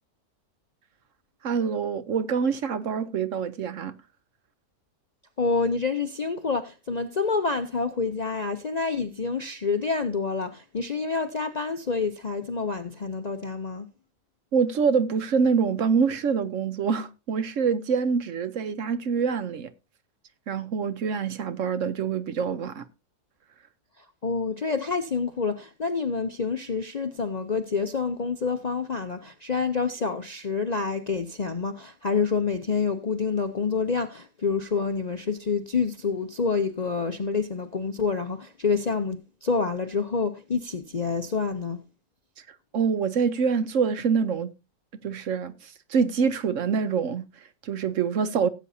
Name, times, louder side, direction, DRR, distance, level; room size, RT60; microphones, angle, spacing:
voice 1, 1.4-3.9 14.5-19.7 20.5-22.9 42.5-44.5 45.0-48.5, right 6 dB, 60° right, 1.0 m, -25 dB
voice 2, 5.4-13.9 24.0-41.8, left 4 dB, 45° left, 0.5 m, -28 dB
17.5 x 8.3 x 2.7 m
omnidirectional pair, 1.6 m